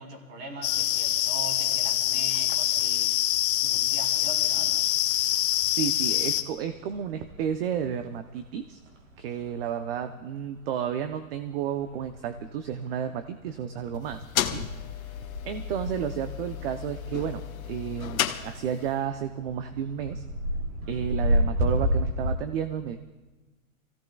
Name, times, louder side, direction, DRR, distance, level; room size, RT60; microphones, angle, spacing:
voice 1, 0.0-3.1 3.6-4.7, right 2 dB, 30° right, 2 dB, 2.9 m, -41 dB
sound 1, 0.6-6.4, left 13 dB, 40° left, 0.8 m, -25 dB
sound 2, 4.0-22.3, equal, 70° right, 3.2 m, -34 dB
voice 2, 5.7-8.8 9.2-14.2 14.5-14.7 15.5-20.2 20.9-23.0, right 8 dB, 45° right, 9 dB, 0.7 m, -32 dB
sound 3, 13.9-19.0, left 11 dB, 85° left, 1.1 m, -34 dB
27.0 x 16.0 x 2.3 m, 1.2 s
hypercardioid pair, 155°, 41 cm